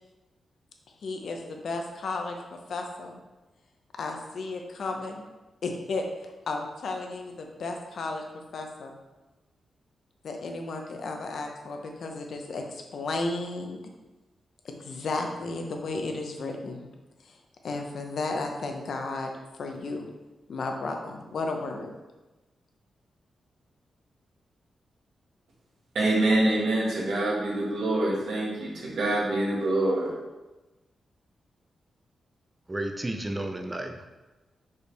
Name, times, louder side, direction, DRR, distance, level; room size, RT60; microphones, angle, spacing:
voice 1, 1.0-2.4 2.7-3.2 4.0-5.2 5.6-6.0 6.5-8.2 8.5-9.0 10.2-13.8 14.6-16.9 17.2-17.4 17.6-19.3 19.6-20.1 20.5-21.9, left 3 dB, 55° left, 3 dB, 0.8 m, -33 dB
voice 2, 26.0-30.1, right 1 dB, 75° right, -4 dB, 1.7 m, -25 dB
voice 3, 32.7-34.1, right 1 dB, 15° right, 5 dB, 0.5 m, -32 dB
6.3 x 5.4 x 3.4 m, 1.1 s
wide cardioid pair, 175°, 0 cm